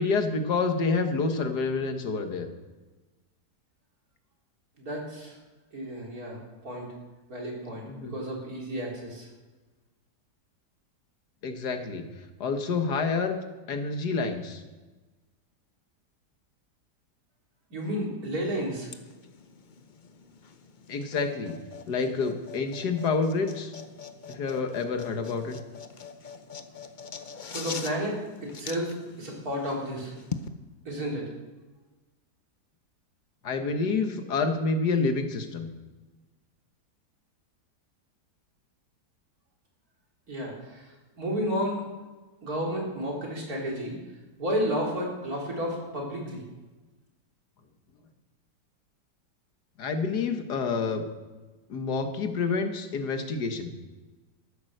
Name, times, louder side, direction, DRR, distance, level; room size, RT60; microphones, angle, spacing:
voice 1, 0.0-2.5 7.9-8.1 11.4-12.0 12.4-13.4 13.7-14.6 20.9-21.6 21.9-23.7 24.3-25.6 33.4-35.7 49.8-51.0 51.7-53.7, left 4 dB, 75° left, 6 dB, 1.9 m, -28 dB
voice 2, 4.8-5.4 5.7-6.4 6.6-6.9 7.3-9.3 17.7-18.9 27.5-30.1 30.9-31.3 40.3-41.8 42.4-44.0 44.4-46.4, equal, 60° right, -2 dB, 4.0 m, -32 dB
sound 1, 18.8-30.5, left 6 dB, 45° left, 0.6 m, -43 dB
13.5 x 11.0 x 6.6 m, 1.2 s
omnidirectional pair, 1.8 m